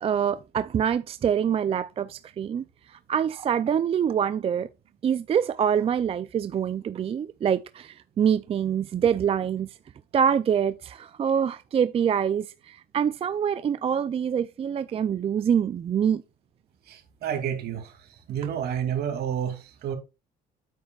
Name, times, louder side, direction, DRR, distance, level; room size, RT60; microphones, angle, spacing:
voice 1, 0.0-2.6 3.1-4.7 5.0-9.7 10.1-16.2, right 8 dB, 35° right, 0.4 m, -25 dB
voice 2, 16.9-19.9, right 9 dB, 70° right, 2.6 m, -30 dB
9.2 x 7.8 x 2.4 m
cardioid pair, 95°, 17 cm